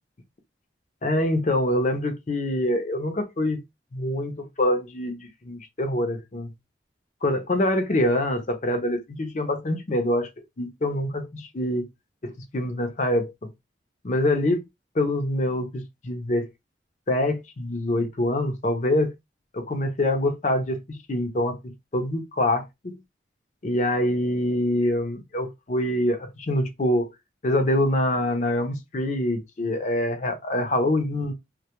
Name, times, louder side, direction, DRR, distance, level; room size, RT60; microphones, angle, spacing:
voice 1, 1.0-3.6 3.9-6.5 7.2-10.3 10.6-11.9 12.2-13.5 14.0-14.6 14.9-16.5 17.1-19.1 19.5-23.0 23.6-27.1 27.4-31.3, left 1 dB, 45° left, 0.5 m, -25 dB
2.2 x 2.2 x 2.8 m
head